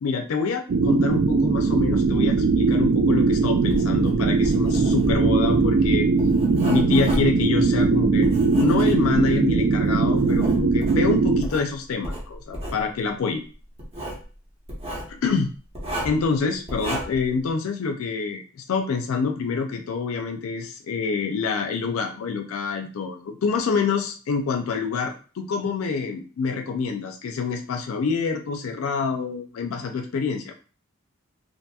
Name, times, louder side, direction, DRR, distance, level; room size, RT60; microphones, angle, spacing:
voice 1, 0.0-6.1 6.7-13.4 15.1-15.5 16.0-30.5, left 5 dB, 80° left, 4 dB, 0.4 m, -26 dB
sound 1, 0.7-11.4, right 4 dB, 50° right, 0.3 m, -20 dB
Writing, 3.6-9.4 9.9-11.7 12.0-12.8 13.8-14.2 14.7-15.1 15.7-16.3 16.7-17.3, equal, 30° right, 0.8 m, -33 dB
2.8 x 2.6 x 2.2 m, 0.38 s
head